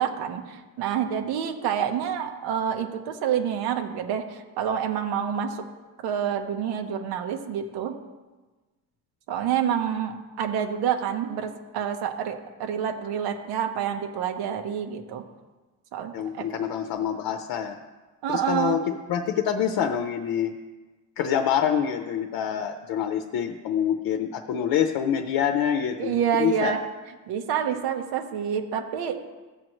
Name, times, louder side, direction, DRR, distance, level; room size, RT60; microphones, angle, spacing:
voice 1, 0.0-5.6 6.0-7.9 9.3-15.2 15.9-16.5 18.2-18.8 26.0-26.8 27.3-29.2, right 8 dB, 90° right, 5 dB, 1.2 m, -28 dB
voice 2, 16.1-17.8 18.3-20.5 21.2-26.8, left 8 dB, 70° left, 6 dB, 0.7 m, -26 dB
15.5 x 7.6 x 3.1 m, 1.2 s
cardioid pair, 145°, 37 cm